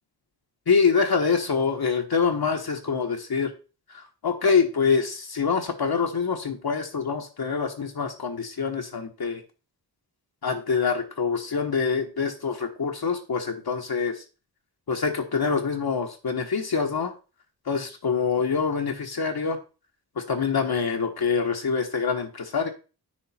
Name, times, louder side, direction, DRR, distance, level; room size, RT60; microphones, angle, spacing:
voice 1, 0.7-3.5 4.2-9.4 10.4-14.2 14.9-17.1 17.7-19.6 20.2-22.7, left 5 dB, 60° left, 2 dB, 1.3 m, -25 dB
9.0 x 6.4 x 4.3 m, 0.34 s
wide cardioid pair, 70°, 42 cm